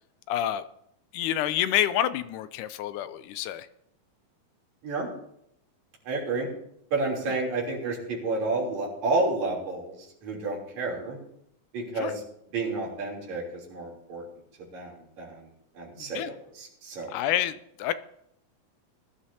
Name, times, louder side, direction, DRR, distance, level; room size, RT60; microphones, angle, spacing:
voice 1, 0.3-0.6 1.1-3.7 7.3-7.4 12.0-12.1 16.0-16.3 17.1-17.5 17.8-17.9, left 12 dB, 80° left, 13 dB, 2.0 m, -28 dB
voice 2, 6.1-6.5 6.9-10.0 10.2-11.2 11.7-12.2 12.5-13.4 13.7-14.2 14.7-15.4 15.8-17.2, right 3 dB, 60° right, -4 dB, 4.6 m, -30 dB
20.0 x 12.0 x 2.8 m, 0.75 s
omnidirectional pair, 3.7 m